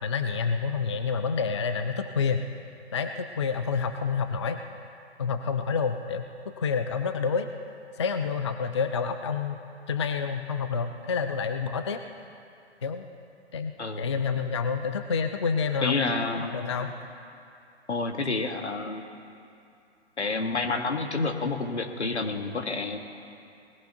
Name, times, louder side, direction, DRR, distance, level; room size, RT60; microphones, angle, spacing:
voice 1, 0.0-2.4 2.9-4.6 5.2-6.2 6.6-7.5 8.0-9.6 9.9-12.0 12.8-13.1 13.5-16.9, left 5 dB, 25° left, 7 dB, 0.4 m, -28 dB
voice 2, 13.8-14.4 15.8-16.6 17.9-19.0 20.2-23.0, left 3 dB, 75° left, 5 dB, 1.6 m, -29 dB
20.0 x 15.0 x 2.7 m, 2.5 s
figure-of-eight pair, 135°, 33 cm